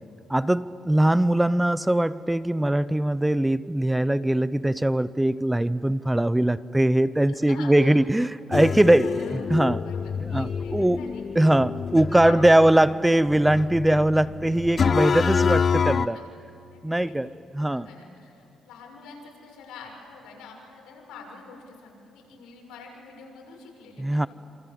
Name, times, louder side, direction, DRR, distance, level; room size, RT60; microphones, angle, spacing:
voice 1, 0.3-9.8 10.3-11.0 11.3-16.2 16.8-17.9 24.0-24.3, right 1 dB, 10° right, 0.6 m, -21 dB
voice 2, 7.3-8.0 8.8-9.4 9.7-11.2 12.1-12.7 16.0-16.2 16.7-17.2 17.6-24.3, left 5 dB, 90° left, 6.7 m, -46 dB
sound 1, 8.5-16.1, left 6 dB, 45° left, 0.6 m, -27 dB
27.5 x 27.5 x 7.8 m
cardioid pair, 90°, 0 cm